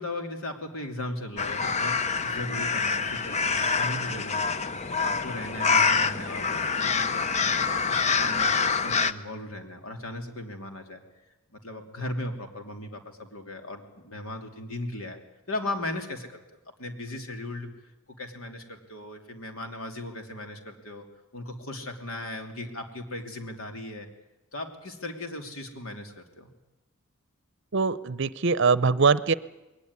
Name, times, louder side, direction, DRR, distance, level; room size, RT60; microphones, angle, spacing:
voice 1, 0.0-4.7 5.0-11.0 11.5-15.2 15.5-16.3 16.8-17.7 18.2-21.0 21.3-24.1 24.5-26.5, left 1 dB, 80° left, 5 dB, 3.1 m, -37 dB
sound 1, 1.4-9.1, left 5 dB, 30° left, 0.7 m, -26 dB
voice 2, 27.7-29.3, right 4 dB, 60° right, 17 dB, 0.7 m, -22 dB
21.5 x 18.0 x 9.7 m, 1.0 s
head